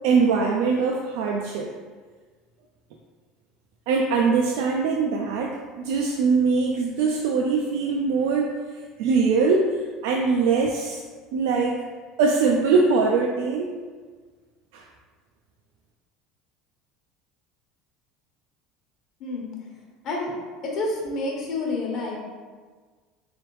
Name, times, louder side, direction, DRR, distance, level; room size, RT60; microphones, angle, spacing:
voice 1, 0.0-1.7 3.9-8.5 9.0-11.0 11.3-11.8 12.2-13.7 14.7-14.8, right 4 dB, 80° right, 0 dB, 0.4 m, -22 dB
voice 2, 19.2-19.5 20.0-20.3 20.6-22.2, left 2 dB, 50° left, -2 dB, 1.0 m, -28 dB
3.4 x 3.4 x 3.0 m, 1.5 s
supercardioid pair, 125°, 0 cm